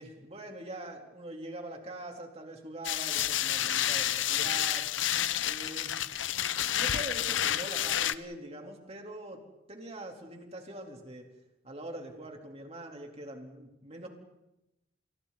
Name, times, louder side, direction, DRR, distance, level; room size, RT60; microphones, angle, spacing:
voice 1, 0.0-4.9 5.4-6.0 6.3-9.4 9.7-11.3 11.6-14.1, right 1 dB, 35° right, 2 dB, 3.8 m, -43 dB
sound 1, 2.8-8.1, left 11 dB, 85° left, 0.8 m, -30 dB
30.0 x 29.0 x 4.2 m, 0.92 s
head